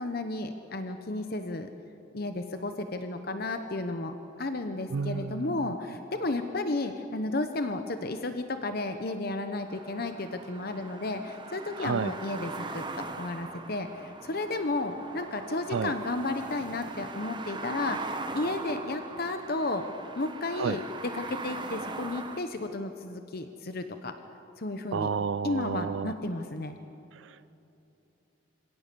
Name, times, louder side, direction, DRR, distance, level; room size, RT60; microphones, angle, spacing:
voice 1, 0.0-1.7 2.1-19.9 20.2-24.2 24.6-25.1 25.4-26.7, left 2 dB, 50° left, 7 dB, 0.9 m, -33 dB
voice 2, 4.9-5.4 11.8-12.1 15.7-15.9 20.6-20.8 24.9-26.1 27.2-27.5, right 6 dB, 65° right, 14 dB, 0.4 m, -31 dB
sound 1, 9.7-22.4, right 3 dB, 25° right, 1.0 m, -40 dB
26.0 x 17.0 x 6.9 m, 3.0 s
head